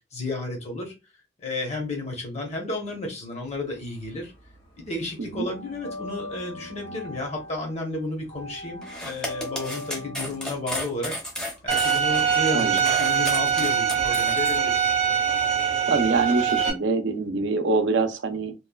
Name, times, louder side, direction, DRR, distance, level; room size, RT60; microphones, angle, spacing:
voice 1, 0.1-0.9 1.4-4.3 4.8-11.1 11.6-14.9, left 2 dB, 35° left, 0.9 m, -32 dB
sound 1, 3.5-4.6 4.9-12.8, left 2 dB, 60° left, 1.4 m, -40 dB
sound 2, 8.8-14.6, left 1 dB, 5° left, 0.6 m, -34 dB
Bowed string instrument, 11.7-16.7, right 8 dB, 35° right, 0.6 m, -23 dB
voice 2, 15.9-18.5, right 3 dB, 85° right, 0.5 m, -24 dB
3.0 x 2.2 x 2.3 m
head